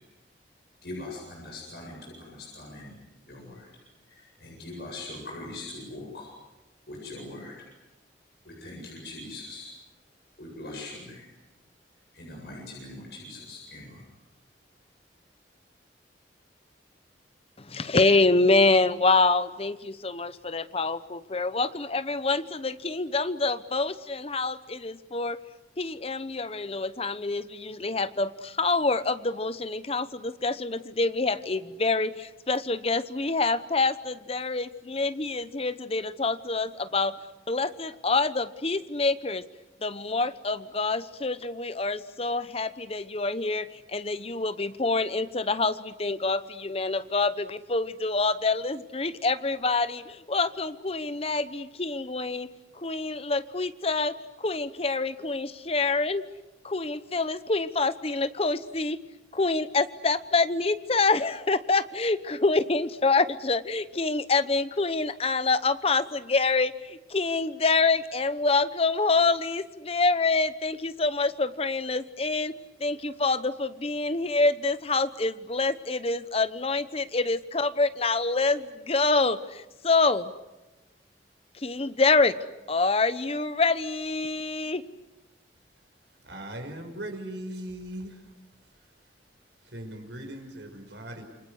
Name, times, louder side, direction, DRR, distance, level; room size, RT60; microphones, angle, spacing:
voice 1, 0.8-3.7 4.1-6.3 6.9-7.7 8.4-9.7 10.4-11.3 12.1-14.1, left 2 dB, 60° left, -2 dB, 8.0 m, -41 dB
voice 2, 17.6-25.4 25.8-37.2 37.5-39.4 39.8-52.5 52.7-56.2 56.6-59.0 59.3-72.5 72.8-80.3 81.5-82.4 82.7-84.8, left 3 dB, 35° left, 13 dB, 0.9 m, -26 dB
voice 3, 86.2-88.2 89.6-91.2, right 1 dB, 75° right, 4 dB, 5.6 m, -39 dB
28.0 x 25.0 x 8.2 m, 1.0 s
head